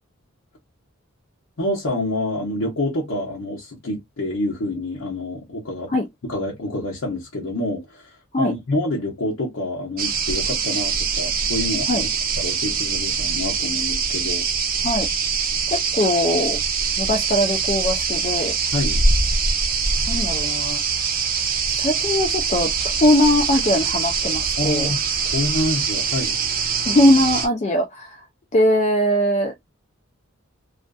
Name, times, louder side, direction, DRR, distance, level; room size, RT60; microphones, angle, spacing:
voice 1, 1.6-5.9 6.2-12.1 12.3-14.4 18.7-19.0 24.6-26.4, left 1 dB, 80° left, 0.8 m, -27 dB
sound 1, 10.0-27.5, right 5 dB, 40° right, 0.5 m, -23 dB
voice 2, 15.7-16.6 17.0-18.5 20.1-20.8 21.7-24.9 26.8-28.1 28.5-29.5, left 1 dB, 30° left, 0.3 m, -20 dB
2.4 x 2.4 x 2.2 m
head